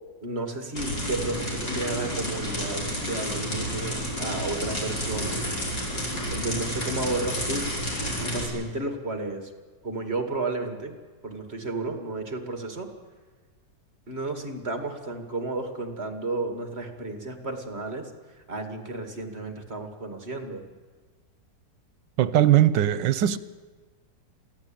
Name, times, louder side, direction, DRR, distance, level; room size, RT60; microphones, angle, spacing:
voice 1, 0.2-5.4 6.1-7.7 8.2-9.5 9.8-11.0 11.2-12.9 14.1-18.1 18.5-20.6, right 2 dB, 35° right, 2.4 m, -32 dB
sound 1, 0.7-8.4, equal, 60° left, 5.9 m, -30 dB
voice 2, 22.2-23.4, right 12 dB, 80° right, 1.5 m, -20 dB
23.0 x 16.0 x 8.9 m
omnidirectional pair, 1.9 m